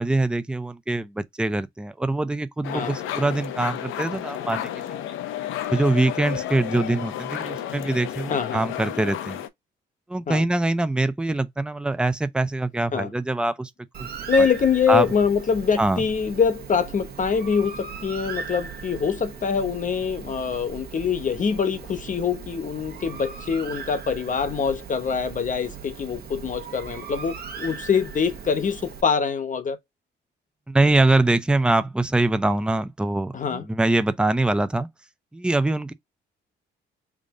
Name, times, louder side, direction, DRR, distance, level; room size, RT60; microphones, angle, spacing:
voice 1, 0.0-4.8 5.7-9.4 10.1-13.7 14.0-14.1 14.9-15.1 15.8-16.0 30.7-34.9 35.3-35.9, right 2 dB, 5° right, 0.5 m, -23 dB
sound 1, 2.6-9.5, left 11 dB, 85° left, 0.7 m, -32 dB
voice 2, 8.3-8.6 10.3-10.4 12.9-13.1 14.3-29.8 33.3-33.6, left 6 dB, 40° left, 0.9 m, -24 dB
Bird, 13.9-29.0, right 6 dB, 50° right, 1.1 m, -38 dB
3.6 x 2.5 x 3.6 m
cardioid pair, 90°, 20 cm